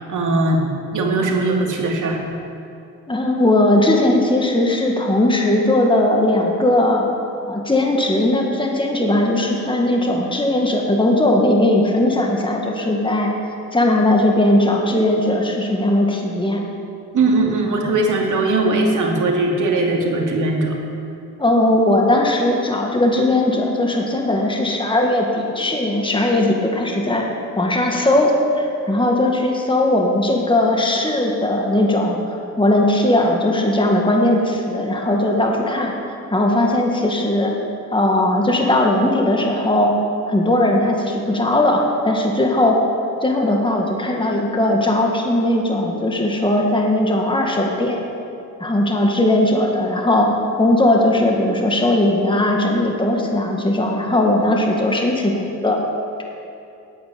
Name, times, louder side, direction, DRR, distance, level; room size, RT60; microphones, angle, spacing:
voice 1, 0.1-0.6 0.9-2.2 17.1-20.8, right 2 dB, 55° right, -1 dB, 2.5 m, -19 dB
voice 2, 3.1-7.0 7.5-13.3 13.7-16.6 21.4-27.3 27.6-32.2 32.6-35.9 36.3-37.5 37.9-40.0 40.3-42.8 43.2-48.0 48.6-55.8, left 1 dB, 15° left, 0 dB, 2.0 m, -18 dB
9.1 x 8.7 x 8.5 m, 2.7 s
supercardioid pair, 65°, 36 cm